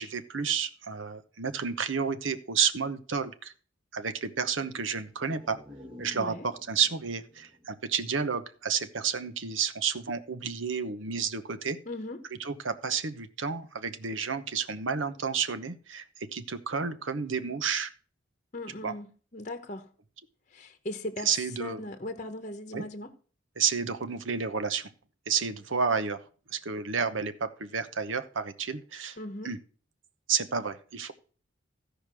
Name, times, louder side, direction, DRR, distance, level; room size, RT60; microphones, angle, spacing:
voice 1, 0.0-3.5 3.9-5.6 6.0-11.8 12.4-16.0 16.3-17.9 18.8-18.9 21.2-21.8 22.7-22.8 23.6-24.9 25.3-26.2 26.5-29.2 29.4-29.6 30.3-31.1, right 6 dB, 70° right, 1.0 m, -31 dB
sound 1, 5.0-8.8 9.1-9.2, left 1 dB, 25° right, 1.2 m, -52 dB
voice 2, 6.1-6.5 11.9-12.2 18.5-19.9 20.5-23.1 29.2-29.5, left 1 dB, 35° left, 1.0 m, -38 dB
15.0 x 5.1 x 6.1 m
head